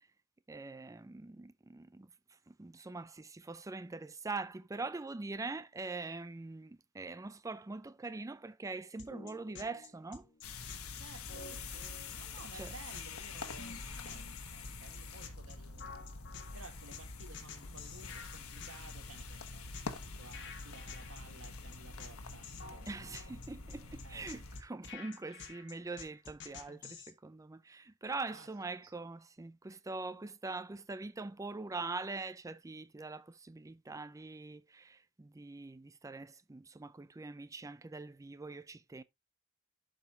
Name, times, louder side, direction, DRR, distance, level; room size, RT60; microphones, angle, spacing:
voice 1, 0.5-2.1 2.5-10.2 12.5-12.7 22.9-39.0, right 3 dB, 15° right, 0.4 m, -43 dB
sound 1, 9.0-27.1, left 5 dB, 55° left, 1.7 m, -50 dB
sound 2, 10.4-24.6, left 4 dB, 90° left, 1.2 m, -46 dB
voice 2, 11.0-15.9 16.5-23.1 24.0-24.3 28.2-28.5 28.8-28.9, right 3 dB, 65° right, 1.7 m, -56 dB
12.0 x 5.0 x 2.9 m
head